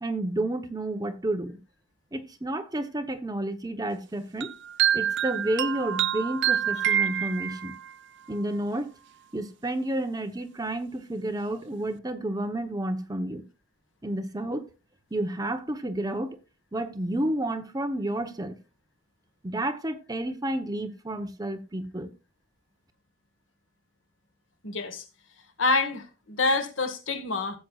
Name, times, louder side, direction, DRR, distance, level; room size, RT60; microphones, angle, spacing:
voice 1, 0.0-1.6 2.1-4.5 4.9-7.8 8.3-8.9 9.3-13.4 14.0-14.6 15.1-16.4 16.7-18.6 19.4-22.1, right 1 dB, 20° right, 1.0 m, -30 dB
sound 1, 4.4-7.9, right 9 dB, 65° right, 0.4 m, -26 dB
voice 2, 24.6-25.0 25.6-27.6, left 3 dB, 85° left, 1.7 m, -27 dB
15.5 x 7.7 x 2.4 m
head